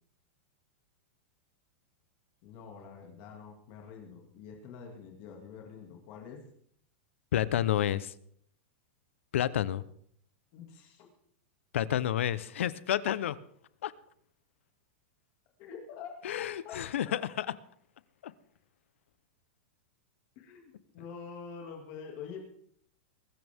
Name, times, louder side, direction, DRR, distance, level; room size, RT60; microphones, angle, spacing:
voice 1, 2.4-6.5 10.5-11.1 15.6-16.1 16.6-16.8 17.1-17.2 20.4-22.4, left 6 dB, 35° left, 1 dB, 2.3 m, -46 dB
voice 2, 7.3-8.1 9.3-9.8 11.7-13.4 13.8-13.9 16.2-17.5 18.2-18.3, left 11 dB, 80° left, 17 dB, 0.9 m, -30 dB
21.5 x 12.5 x 3.6 m, 0.64 s
supercardioid pair, 180°, 7 cm